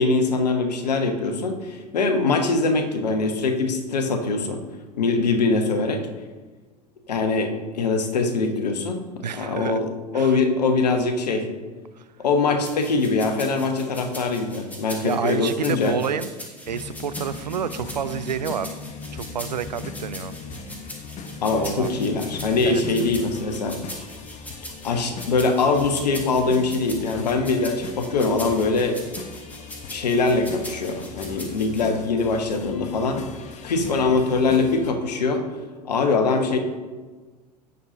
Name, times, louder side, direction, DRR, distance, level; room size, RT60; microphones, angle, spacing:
voice 1, 0.0-4.6 5.0-6.1 7.1-11.5 12.2-15.9 21.4-23.8 24.8-29.0 29.9-33.2 33.6-35.5 35.8-36.6, left 3 dB, 75° left, 6 dB, 1.2 m, -23 dB
voice 2, 9.2-9.8 10.1-10.4 12.0-12.1 15.0-18.7 19.1-20.3 21.6-21.9 22.6-22.8 33.8-34.2, right 8 dB, 85° right, 13 dB, 0.5 m, -29 dB
sound 1, 12.6-31.9, equal, 5° left, 2.2 m, -40 dB
sound 2, 16.7-34.9, left 4 dB, 35° left, 1.1 m, -39 dB
17.0 x 6.6 x 2.8 m, 1.4 s
figure-of-eight pair, 80°, 21 cm